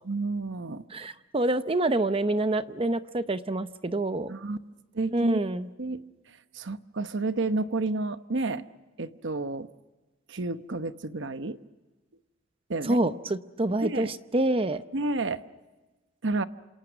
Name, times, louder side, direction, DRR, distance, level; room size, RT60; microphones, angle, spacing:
voice 1, 0.0-0.8 4.3-4.6 4.9-5.4 5.8-6.0 6.5-8.6 9.0-9.7 10.3-11.6 12.7-13.0 13.8-14.1 14.9-15.4 16.2-16.4, right 3 dB, 60° right, 11 dB, 1.0 m, -30 dB
voice 2, 0.9-4.4 5.1-5.7 12.8-14.8, right 2 dB, 25° right, 11 dB, 0.7 m, -27 dB
27.5 x 27.5 x 6.1 m, 1.2 s
head